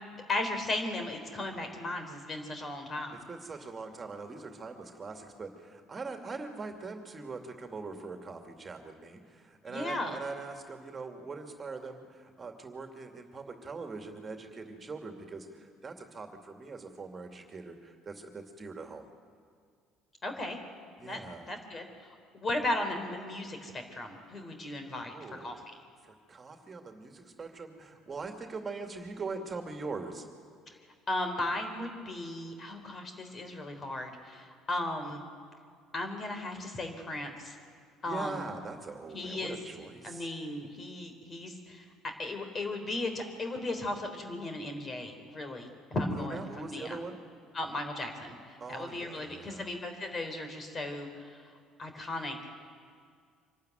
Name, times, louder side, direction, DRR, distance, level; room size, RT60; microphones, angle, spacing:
voice 1, 0.3-3.2 9.7-10.2 20.2-20.6 21.0-21.2 21.5-25.1 25.4-25.6 31.1-35.2 35.9-37.6 38.0-38.4 39.1-39.6 40.0-46.4 46.7-47.0 47.5-51.5 51.8-52.6, left 2 dB, 35° left, 6 dB, 3.8 m, -36 dB
voice 2, 3.3-19.1 21.0-21.5 24.6-24.7 25.0-25.6 26.0-30.3 38.0-40.3 46.1-47.2 48.6-49.7, right 4 dB, 30° right, 4 dB, 2.5 m, -42 dB
25.0 x 12.0 x 9.3 m, 2.1 s
hypercardioid pair, 65°, 0 cm